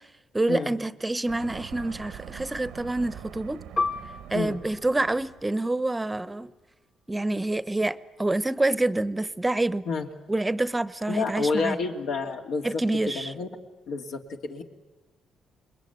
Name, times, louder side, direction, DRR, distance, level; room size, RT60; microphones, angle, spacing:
voice 1, 0.3-3.6 4.3-6.5 7.1-9.8 10.3-11.8 12.6-13.3, right 2 dB, 15° right, 15 dB, 0.8 m, -27 dB
sound 1, 1.3-5.5, right 10 dB, 85° right, 1.0 m, -44 dB
Piano, 3.8-8.8 9.1-9.3 10.1-10.4, left 3 dB, 35° left, 1.4 m, -36 dB
voice 2, 11.1-12.7 13.1-13.5 13.9-14.6, left 4 dB, 80° left, 2 dB, 2.7 m, -29 dB
27.5 x 21.5 x 9.4 m, 1.2 s
cardioid pair, 90°, 0 cm